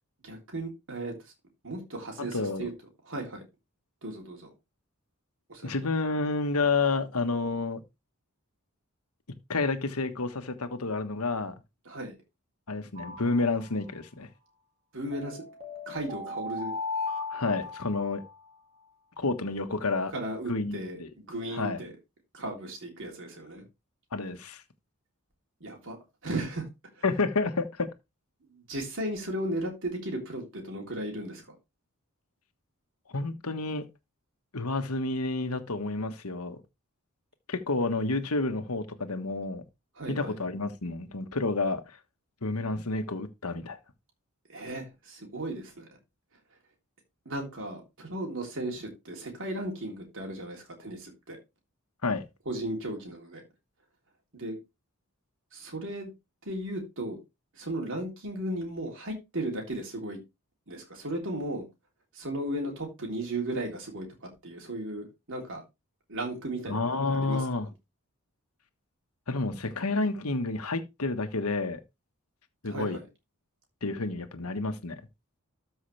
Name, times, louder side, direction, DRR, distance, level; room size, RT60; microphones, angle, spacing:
voice 1, 0.2-1.1 1.6-2.7 3.0-3.4 4.0-4.5 5.5-5.7 11.8-12.1 14.9-15.4 15.9-16.7 20.1-21.9 22.3-23.6 25.6-26.0 26.2-26.7 27.0-27.1 28.6-31.4 40.0-40.4 44.5-45.9 47.2-51.4 52.4-53.4 54.3-54.6 55.5-56.1 56.4-57.2 57.5-60.2 60.7-61.6 62.1-64.1 64.4-65.6 66.1-67.5 72.7-73.0, right 1 dB, 60° right, 3.4 m, -35 dB
voice 2, 2.2-2.7 5.6-7.8 9.5-11.5 12.7-14.3 17.3-18.2 19.2-20.1 20.5-21.1 21.5-21.8 24.1-24.6 27.0-27.9 33.1-33.9 34.5-36.6 37.5-39.6 40.1-41.8 42.4-43.8 52.0-52.2 66.7-67.7 69.3-71.8 72.6-73.0 73.8-75.0, left 3 dB, 85° left, 1.4 m, -30 dB
sound 1, 13.0-14.0 15.1-18.3, left 3 dB, 30° right, 2.6 m, -37 dB
13.0 x 5.6 x 3.3 m
head